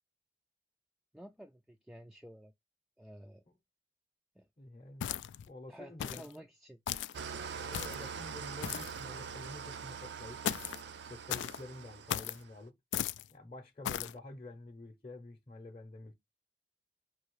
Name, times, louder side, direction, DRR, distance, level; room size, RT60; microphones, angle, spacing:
voice 1, 1.1-2.5 3.0-3.4 4.4-4.5 5.7-6.8, equal, ahead, 0.3 m, -51 dB
voice 2, 4.6-6.4 7.5-10.4 11.1-12.7 13.3-16.1, left 2 dB, 30° left, 0.7 m, -49 dB
sound 1, 5.0-5.5 6.0-6.3 6.9-7.2 7.7-8.1 8.6-9.0 10.4-10.8 11.3-11.6 12.1-12.4 12.9-13.3 13.8-14.1, left 10 dB, 85° left, 0.3 m, -36 dB
Engine starting / Idling, 7.1-12.6, right 6 dB, 70° right, 0.4 m, -44 dB
5.5 x 2.8 x 3.0 m
head